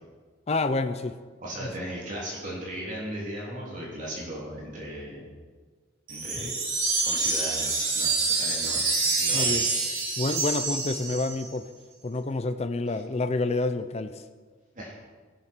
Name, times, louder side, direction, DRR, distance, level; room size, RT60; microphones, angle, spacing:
voice 1, 0.5-1.2 6.4-6.5 9.3-9.6 10.2-11.7 12.0-14.1, left 2 dB, 30° left, 9 dB, 0.6 m, -28 dB
voice 2, 1.4-5.2 6.1-6.5 7.0-8.1 8.4-9.6 12.9-13.0 14.7-14.9, right 1 dB, 40° right, -4 dB, 3.2 m, -37 dB
sound 1, 6.1-11.5, right 3 dB, 80° right, 4.9 m, -27 dB
15.5 x 12.5 x 4.5 m, 1.5 s
head